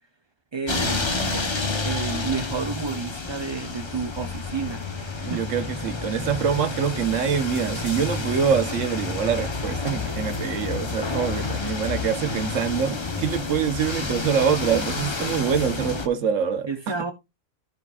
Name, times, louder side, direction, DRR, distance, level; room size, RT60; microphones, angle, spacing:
voice 1, 0.5-1.1 1.8-5.4 16.7-17.1, right 5 dB, 30° right, 0.6 m, -31 dB
sound 1, 0.7-16.1, left 4 dB, 25° left, 0.8 m, -29 dB
voice 2, 5.2-17.0, right 7 dB, 80° right, 1.3 m, -25 dB
14.5 x 5.2 x 2.3 m
omnidirectional pair, 1.3 m